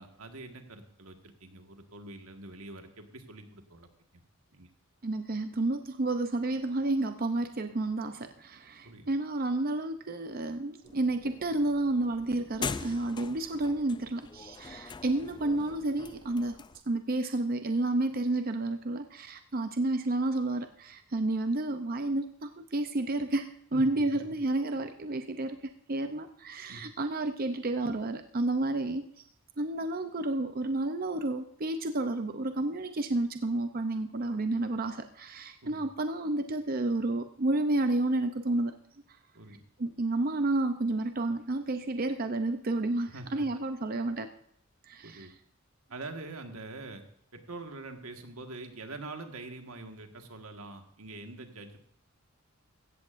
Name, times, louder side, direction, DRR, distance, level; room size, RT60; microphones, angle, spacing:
voice 1, 0.0-3.9 4.5-4.7 8.8-9.1 23.7-23.8 26.7-26.8 35.6-35.8 39.3-39.6 43.0-43.4 45.0-45.3 45.9-47.0 47.3-51.8, right 2 dB, 90° right, 5 dB, 1.7 m, -44 dB
voice 2, 5.0-16.6 16.9-29.0 29.6-38.8 39.8-44.3 44.9-45.3, right 2 dB, 45° right, 8 dB, 0.6 m, -31 dB
sound 1, 10.8-16.8, left 5 dB, 20° left, 0.4 m, -42 dB
16.5 x 13.5 x 2.6 m, 0.67 s
head